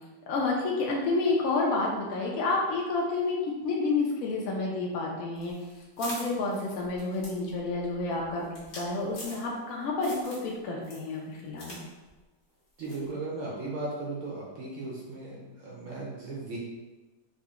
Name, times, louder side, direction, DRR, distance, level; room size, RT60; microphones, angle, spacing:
voice 1, 0.3-3.4 3.6-5.5 6.0-11.8, left 3 dB, 70° left, -2 dB, 0.9 m, -29 dB
sound 1, 5.4-9.7 10.0-10.5 10.8-11.8 12.1-12.2 12.8-13.1, left 1 dB, 45° left, 1.5 m, -43 dB
voice 2, 12.8-16.6, right 2 dB, 65° right, -4 dB, 0.8 m, -36 dB
3.8 x 2.1 x 3.5 m, 1.2 s
omnidirectional pair, 1.9 m